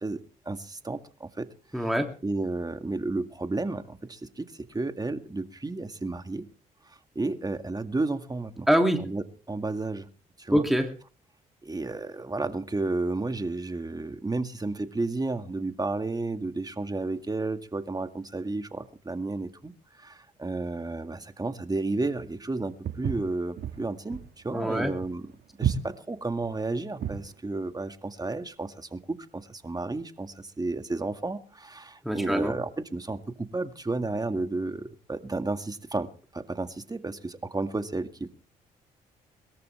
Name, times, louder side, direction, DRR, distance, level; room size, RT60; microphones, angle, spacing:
voice 1, 0.0-1.5 1.7-1.9 2.2-6.5 6.9-8.7 9.0-10.1 10.4-10.6 11.6-25.3 25.6-38.3, right 2 dB, 20° right, 2.1 m, -32 dB
voice 2, 1.7-2.1 8.7-9.0 10.5-10.9 24.5-24.9 32.0-32.6, equal, ahead, 2.8 m, -24 dB
Walk footsteps, 22.8-27.3, right 8 dB, 60° right, 2.1 m, -32 dB
22.0 x 13.5 x 3.5 m
supercardioid pair, 55°, 18 cm